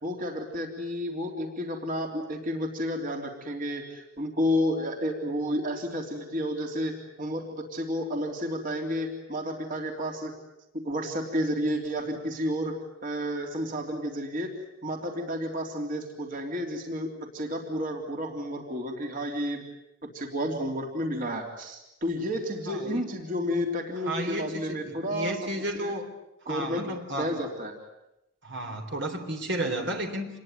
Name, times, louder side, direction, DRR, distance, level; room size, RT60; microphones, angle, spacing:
voice 1, 0.0-10.3 10.7-12.8 13.0-14.5 14.8-19.6 20.1-25.4 25.7-25.9 26.5-26.9 27.2-27.8, equal, 45° right, 2 dB, 3.5 m, -31 dB
voice 2, 22.7-23.1 23.5-23.6 24.1-26.1 26.5-27.4 28.4-30.3, right 1 dB, 60° right, 4 dB, 3.8 m, -33 dB
27.5 x 21.5 x 9.3 m, 0.91 s
head